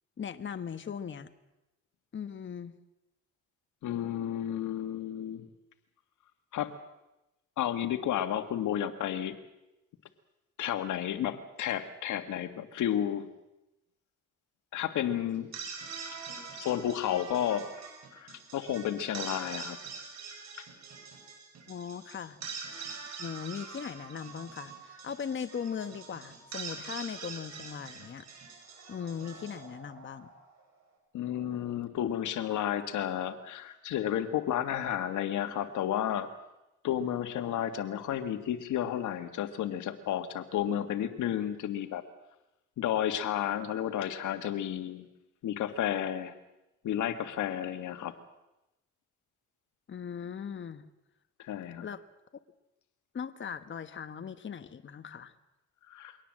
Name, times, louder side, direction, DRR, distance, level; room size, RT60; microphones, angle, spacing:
voice 1, 0.2-1.3 2.1-2.7 21.7-22.4 23.2-28.3 28.9-30.3 49.9-50.9 51.8-52.0 53.1-55.3, left 7 dB, 40° left, 10 dB, 1.2 m, -39 dB
voice 2, 3.8-5.5 6.5-6.7 7.6-9.4 10.6-13.3 14.7-15.5 16.6-17.7 18.1-19.8 31.1-36.3 36.8-42.0 42.8-45.1 45.4-46.3 46.8-48.1 51.4-51.8 55.9-56.2, left 10 dB, 80° left, 9 dB, 1.8 m, -32 dB
sound 1, 15.3-30.6, right 5 dB, 65° right, 6.6 m, -44 dB
23.5 x 18.5 x 7.7 m, 0.93 s
cardioid pair, 90°, 30 cm